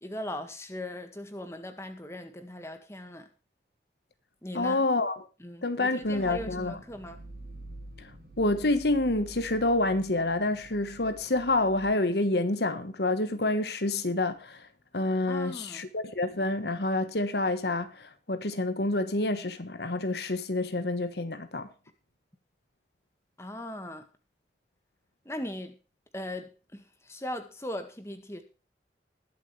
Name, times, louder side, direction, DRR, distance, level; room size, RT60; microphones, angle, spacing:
voice 1, 0.0-3.3 4.4-4.8 5.4-7.2 15.3-15.9 23.4-24.1 25.3-25.8 26.1-28.4, left 1 dB, 15° left, 1.7 m, -39 dB
voice 2, 4.5-5.3 5.6-6.8 8.0-8.1 8.4-14.7 14.9-21.7, left 2 dB, 75° left, 1.3 m, -28 dB
sound 1, 6.0-11.9, right 1 dB, 55° right, 4.5 m, -47 dB
21.0 x 7.7 x 3.3 m
head